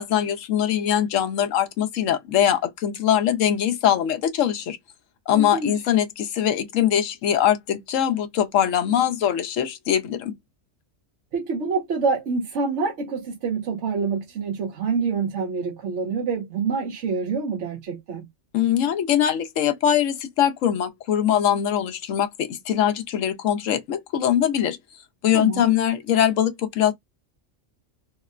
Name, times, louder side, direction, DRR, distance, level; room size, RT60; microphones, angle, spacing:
voice 1, 0.0-4.8 5.3-10.3 18.5-24.8 25.2-26.9, left 10 dB, 80° left, 1.0 m, -22 dB
voice 2, 5.3-5.8 11.3-18.3 25.3-25.7, right 5 dB, 70° right, 1.1 m, -26 dB
3.6 x 2.1 x 2.4 m
omnidirectional pair, 1.3 m